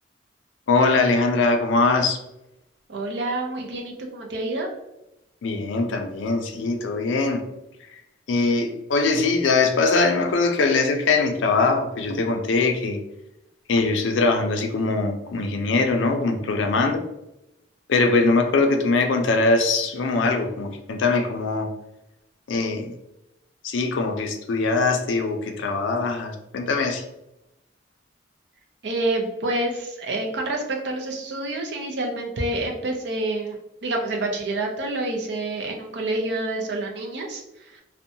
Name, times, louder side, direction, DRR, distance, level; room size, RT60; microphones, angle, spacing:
voice 1, 0.7-2.2 5.4-7.4 8.3-13.0 13.7-17.0 17.9-21.7 22.5-23.0 23.6-27.0, left 3 dB, 75° left, 5 dB, 0.4 m, -22 dB
voice 2, 2.9-4.7 28.8-33.6 33.8-37.8, right 2 dB, 60° right, 1 dB, 0.5 m, -28 dB
2.6 x 2.1 x 2.6 m, 0.89 s
head